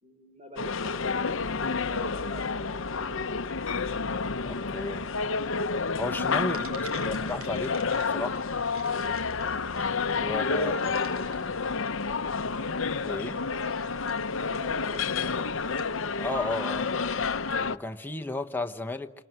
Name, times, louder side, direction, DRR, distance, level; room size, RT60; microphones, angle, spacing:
voice 1, 0.0-3.3 6.4-7.2 9.4-9.6 14.4-15.9, right 1 dB, 30° right, 4.3 m, -47 dB
sound 1, 0.6-17.8, left 4 dB, 65° left, 0.8 m, -30 dB
voice 2, 4.5-5.0 6.0-6.6 7.1-7.8 8.1-8.4 10.2-11.0 13.0-13.4 16.2-16.9 17.7-19.1, left 2 dB, 10° left, 1.0 m, -33 dB
sound 2, 6.5-16.0, left 2 dB, 85° right, 2.4 m, -43 dB
29.0 x 25.0 x 7.8 m
head